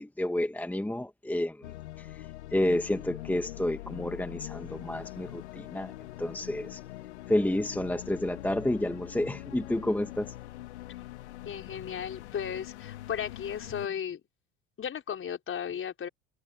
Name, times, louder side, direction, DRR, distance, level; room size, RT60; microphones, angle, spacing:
voice 1, 0.0-1.6 2.5-5.9 6.2-6.8 7.3-10.3, left 1 dB, 5° left, 1.4 m, -30 dB
sound 1, 1.6-13.9, left 15 dB, 85° left, 1.9 m, -43 dB
voice 2, 11.4-14.2 14.8-16.1, left 8 dB, 40° left, 4.8 m, -35 dB
hypercardioid pair, 75°, 33 cm